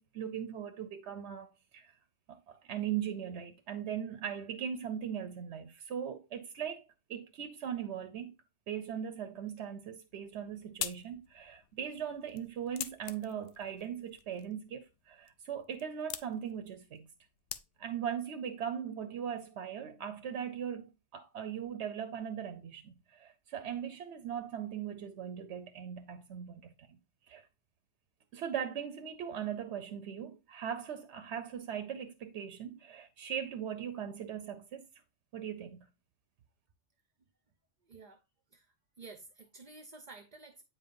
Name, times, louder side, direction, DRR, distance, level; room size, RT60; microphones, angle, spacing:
voice 1, 0.0-2.0 2.3-6.8 7.1-8.3 8.7-17.1 17.8-27.0 27.3-27.4 28.3-34.8 35.3-35.9, right 8 dB, 75° right, 0.9 m, -39 dB
sound 1, 10.1-18.1, left 10 dB, 65° left, 0.7 m, -46 dB
voice 2, 37.9-38.2 38.5-38.7 39.0-40.6, right 3 dB, 45° right, 0.7 m, -51 dB
8.6 x 5.3 x 2.5 m
omnidirectional pair, 1.2 m